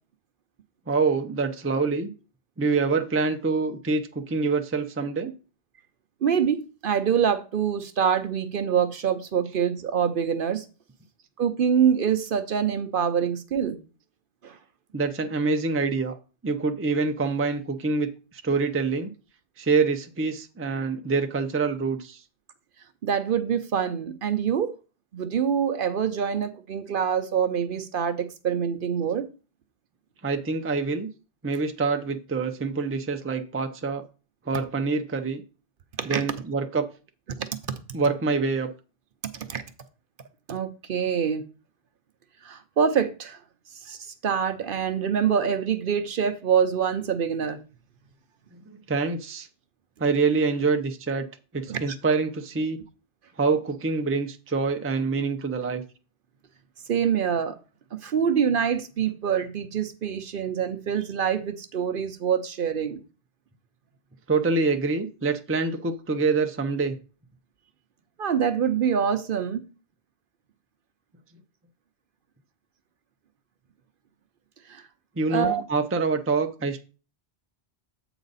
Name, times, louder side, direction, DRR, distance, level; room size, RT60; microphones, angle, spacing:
voice 1, 0.9-2.1 2.6-5.3 14.9-16.2 16.4-18.1 18.4-19.1 19.6-22.2 30.2-31.1 31.4-34.0 34.5-35.4 36.0-36.8 37.9-38.7 48.5-49.5 50.0-51.3 51.5-52.8 53.4-55.8 64.3-67.0 75.2-76.8, right 4 dB, 15° right, 0.5 m, -26 dB
voice 2, 6.2-10.6 11.4-13.8 14.4-14.6 23.0-24.7 25.1-29.3 36.0-36.2 37.4-37.5 39.4-39.6 40.5-41.4 42.4-43.4 43.8-47.6 51.7-52.0 56.9-57.6 58.0-63.0 68.2-69.6 74.7-74.8 75.3-75.6, right 7 dB, 60° right, 0.8 m, -25 dB
7.9 x 4.9 x 4.0 m
omnidirectional pair, 1.1 m